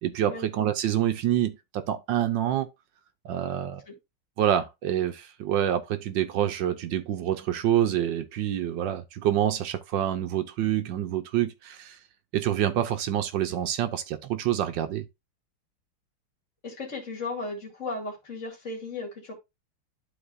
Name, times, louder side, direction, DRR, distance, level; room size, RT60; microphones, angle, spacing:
voice 1, 0.0-2.7 3.2-3.8 4.4-12.0 12.3-15.1, right 11 dB, 70° right, 1.3 m, -27 dB
voice 2, 16.6-19.3, left 3 dB, 35° left, 2.6 m, -35 dB
12.0 x 4.1 x 2.5 m
omnidirectional pair, 2.3 m